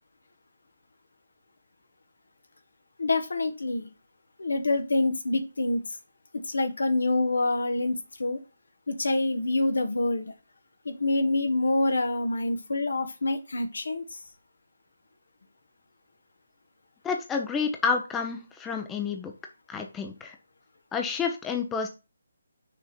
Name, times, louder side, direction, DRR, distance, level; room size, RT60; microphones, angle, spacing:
voice 1, 3.0-3.9 4.4-5.8 6.3-8.4 8.9-10.3 10.8-14.2, left 2 dB, 80° left, 7 dB, 1.6 m, -26 dB
voice 2, 17.0-19.3 19.7-20.4 20.9-21.9, left 5 dB, 10° left, 3 dB, 0.8 m, -29 dB
6.4 x 4.3 x 5.2 m, 0.28 s
hypercardioid pair, 160°, 0 cm